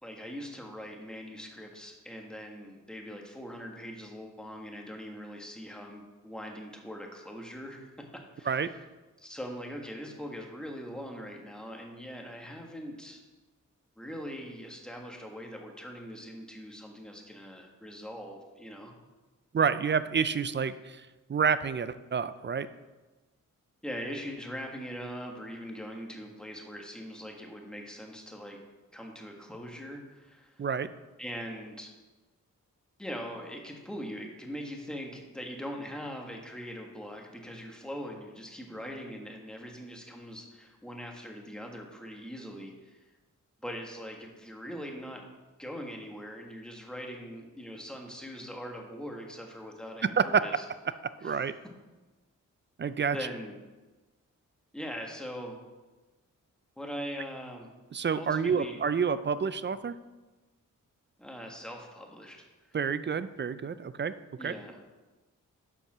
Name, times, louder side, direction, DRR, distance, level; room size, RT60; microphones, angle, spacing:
voice 1, 0.0-8.8 9.2-13.2 14.0-18.9 23.8-28.6 28.9-30.7 31.2-31.9 33.0-43.0 43.6-45.2 45.6-50.6 51.2-51.4 53.1-53.5 54.7-55.6 56.8-57.7 58.1-58.8 61.2-62.8 64.4-64.8, equal, ahead, 1 dB, 1.6 m, -41 dB
voice 2, 19.5-22.7 30.6-30.9 50.2-50.4 51.2-51.5 52.8-53.2 57.9-60.0 62.7-64.1 64.4-64.5, right 6 dB, 35° right, 14 dB, 0.4 m, -28 dB
7.4 x 5.4 x 6.1 m, 1.2 s
cardioid pair, 70°, 32 cm